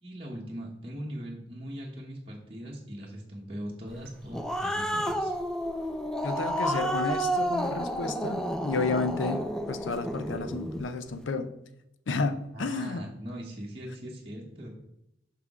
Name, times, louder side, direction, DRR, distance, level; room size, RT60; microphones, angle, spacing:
voice 1, 0.0-5.3 12.5-14.7, equal, 30° right, -3 dB, 0.9 m, -40 dB
Growling, 4.1-10.8, equal, 5° left, 0.4 m, -31 dB
voice 2, 6.2-11.5 12.1-13.0, left 4 dB, 90° left, 10 dB, 0.6 m, -31 dB
5.8 x 5.8 x 3.6 m, 0.84 s
head